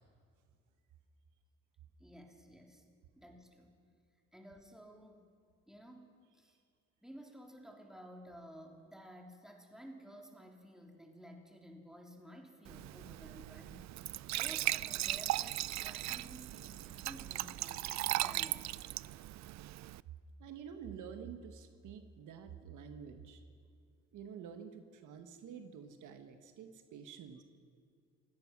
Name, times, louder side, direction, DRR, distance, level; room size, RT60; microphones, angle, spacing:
voice 1, 2.0-2.9 3.2-3.7 4.3-5.2 5.7-6.6 7.0-13.9 14.4-18.9, equal, ahead, 1 dB, 3.3 m, -54 dB
Glass / Trickle dribble / Fill (with liquid), 12.7-20.0, right 15 dB, 65° right, 0.5 m, -38 dB
voice 2, 20.4-23.4 24.1-27.4, right 7 dB, 80° right, 7 dB, 1.6 m, -49 dB
28.0 x 17.0 x 6.1 m, 2.2 s
cardioid pair, 90°, 30 cm